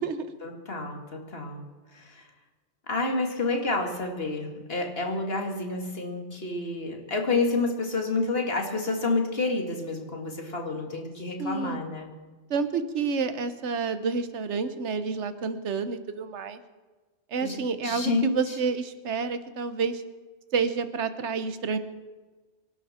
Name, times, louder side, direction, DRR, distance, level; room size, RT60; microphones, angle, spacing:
voice 1, 0.4-1.6 1.9-2.2 2.9-12.1 17.4-17.6 17.8-18.4, left 3 dB, 55° left, 3 dB, 2.3 m, -29 dB
voice 2, 11.4-11.8 12.5-16.6 17.3-20.0 20.5-21.8, right 5 dB, 75° right, 11 dB, 1.3 m, -29 dB
25.5 x 11.5 x 4.3 m, 1.3 s
omnidirectional pair, 1.2 m